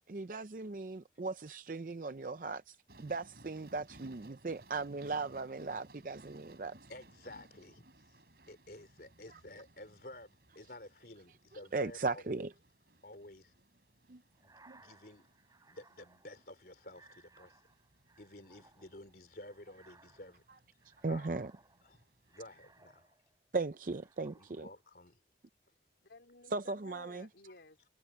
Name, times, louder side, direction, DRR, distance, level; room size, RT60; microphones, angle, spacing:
voice 1, 0.1-6.8 11.7-12.5 14.1-14.2 14.7-14.8 21.0-21.5 23.5-24.7 26.5-27.3, right 3 dB, 50° right, 0.5 m, -38 dB
sound 1, 2.9-22.8, right 2 dB, 65° right, 3.6 m, -62 dB
voice 2, 6.9-8.2 8.5-12.2 13.0-13.5 14.4-15.3 15.7-17.6 18.2-20.4 21.1-21.3 21.8-22.0 22.3-23.1 24.4-25.2 27.5-27.6, left 1 dB, 55° left, 3.9 m, -52 dB
sound 2, 14.3-23.4 23.8-24.9, right 3 dB, 20° right, 6.1 m, -64 dB
voice 3, 26.0-27.9, left 2 dB, 85° left, 4.1 m, -56 dB
head